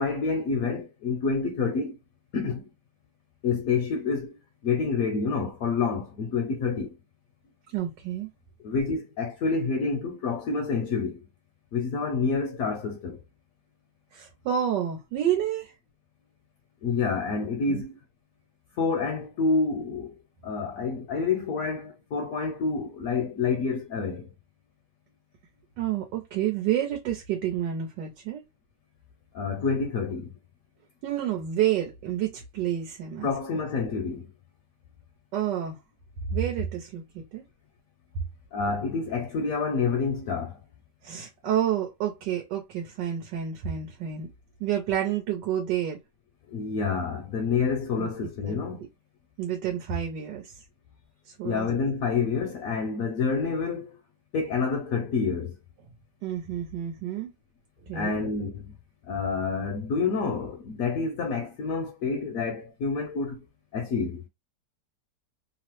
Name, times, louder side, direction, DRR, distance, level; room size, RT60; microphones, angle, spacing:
voice 1, 0.0-2.0 2.3-2.7 3.4-7.0 8.6-11.3 11.7-13.2 16.8-18.0 18.8-20.1 20.4-24.3 29.3-30.3 33.2-34.3 38.5-40.6 46.5-48.8 51.4-54.0 54.3-55.6 57.9-58.8 59.0-63.4 63.7-64.3, left 4 dB, 70° left, 0.9 m, -28 dB
voice 2, 7.7-8.3 14.1-15.7 17.7-17.8 25.8-28.4 31.0-33.3 35.3-35.8 36.3-37.4 41.0-44.3 44.6-46.0 48.0-48.1 48.4-48.6 49.4-50.5 51.3-51.7 56.2-57.3 57.9-58.2, right 10 dB, 90° right, 1.4 m, -29 dB
3.1 x 2.0 x 3.0 m
omnidirectional pair, 1.8 m